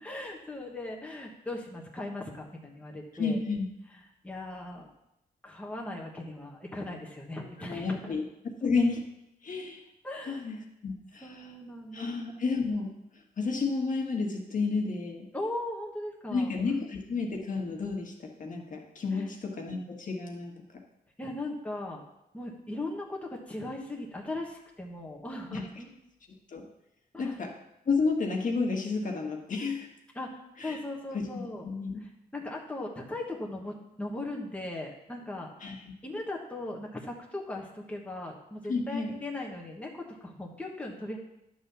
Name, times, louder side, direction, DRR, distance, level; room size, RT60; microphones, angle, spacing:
voice 1, 0.0-3.4 4.2-4.9 5.4-8.1 10.0-10.4 11.2-12.1 15.3-16.5 19.1-19.3 21.2-22.0 22.3-25.9 27.1-27.4 30.1-31.6 32.0-35.5 36.0-41.2, left 2 dB, 10° left, -1 dB, 1.3 m, -38 dB
voice 2, 3.1-3.7 7.7-8.2 8.6-9.0 9.4-9.8 10.3-10.6 10.8-11.5 11.9-12.9 13.4-15.3 16.3-20.5 25.5-25.6 26.5-26.7 27.2-27.6 27.8-29.9 30.6-30.8 31.1-32.0 35.6-35.8 38.7-39.1, left 4 dB, 50° left, 1 dB, 1.6 m, -31 dB
11.0 x 4.0 x 6.9 m, 0.86 s
cardioid pair, 110°, 17 cm